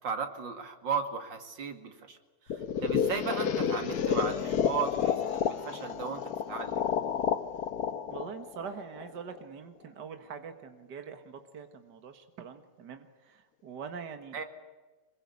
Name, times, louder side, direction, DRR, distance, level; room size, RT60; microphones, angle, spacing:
voice 1, 0.0-2.2 2.5-6.8 14.3-14.4, right 6 dB, 90° right, 6 dB, 2.9 m, -36 dB
sound 1, 2.5-9.4, left 7 dB, 60° left, 1.5 m, -30 dB
voice 2, 8.1-14.4, right 6 dB, 70° right, 7 dB, 2.2 m, -43 dB
26.0 x 22.5 x 8.4 m, 1.2 s
omnidirectional pair, 1.9 m